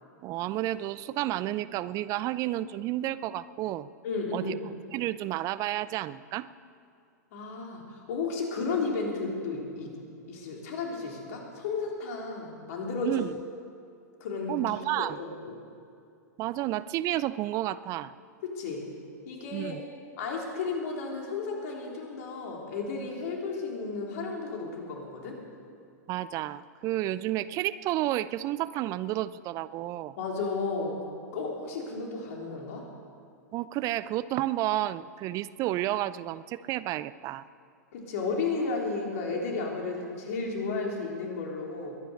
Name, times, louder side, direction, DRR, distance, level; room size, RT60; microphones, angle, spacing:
voice 1, 0.2-3.9 4.3-4.6 4.9-6.5 13.0-13.3 14.5-15.2 16.4-18.1 19.5-19.8 26.1-30.1 33.5-37.4, right 14 dB, 35° right, 17 dB, 0.5 m, -31 dB
voice 2, 4.0-4.6 7.3-10.0 10.3-13.3 14.2-14.6 14.9-15.5 18.4-18.9 19.3-19.8 20.2-25.4 30.2-31.1 31.3-32.9 37.9-41.9, left 4 dB, 60° left, -1 dB, 3.8 m, -33 dB
21.5 x 10.0 x 6.5 m, 2.5 s
hypercardioid pair, 105°, 9 cm